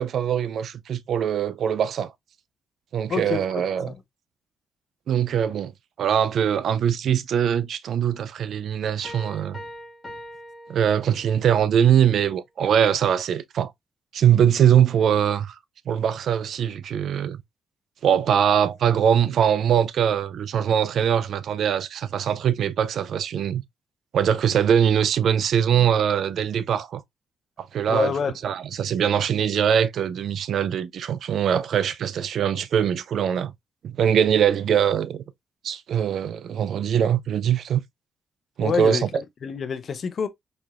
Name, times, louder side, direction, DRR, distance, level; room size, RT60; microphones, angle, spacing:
voice 1, 0.0-2.1 2.9-3.9 5.1-5.7 6.0-9.6 10.7-13.7 14.1-15.6 15.9-17.4 18.0-23.6 24.1-27.0 27.6-28.1 28.4-33.5 33.8-35.2 35.6-37.8 38.6-39.0, right 8 dB, 70° right, 0.4 m, -22 dB
voice 2, 3.1-4.0 27.9-28.4 38.6-40.3, left 6 dB, 55° left, 0.6 m, -28 dB
Piano, 9.0-11.5, equal, 20° left, 1.4 m, -42 dB
4.3 x 2.8 x 2.4 m
cardioid pair, 105°, 0 cm